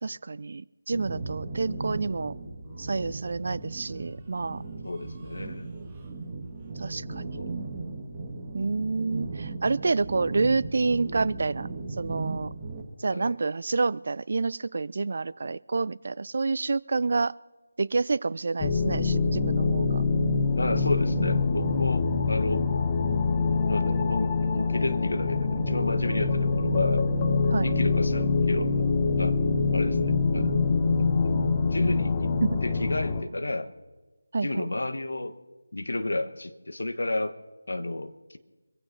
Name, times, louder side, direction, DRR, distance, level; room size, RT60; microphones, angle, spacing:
voice 1, 0.0-2.3 2.8-4.6 6.8-7.3 8.5-11.7 12.0-12.5 13.0-17.3 17.8-20.0 27.5-27.7 32.4-32.6 34.3-34.7, right 3 dB, 45° right, 20 dB, 0.4 m, -28 dB
sound 1, 0.9-12.8, right 3 dB, 15° right, 1.9 m, -37 dB
voice 2, 4.8-5.7 7.3-7.5 13.1-13.3 20.6-22.6 23.7-27.0 27.6-28.7 29.2-29.4 29.7-30.5 31.0-31.1 31.6-32.3 32.6-33.7 34.4-35.4 35.7-37.3 37.7-38.4, left 2 dB, 65° left, 8 dB, 1.4 m, -31 dB
sound 2, 18.6-33.2, left 4 dB, 20° left, 0.9 m, -25 dB
25.0 x 15.5 x 2.8 m, 1.2 s
figure-of-eight pair, 160°, 0 cm